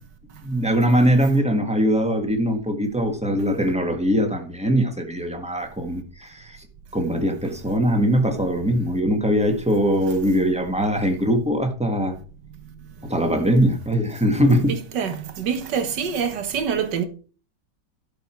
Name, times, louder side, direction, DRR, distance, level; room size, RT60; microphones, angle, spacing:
voice 1, 0.4-6.6 6.9-12.2 13.0-14.7, equal, 5° right, 1.4 m, -21 dB
voice 2, 14.7-17.0, right 7 dB, 70° right, 1.8 m, -26 dB
12.0 x 6.6 x 4.5 m
omnidirectional pair, 1.9 m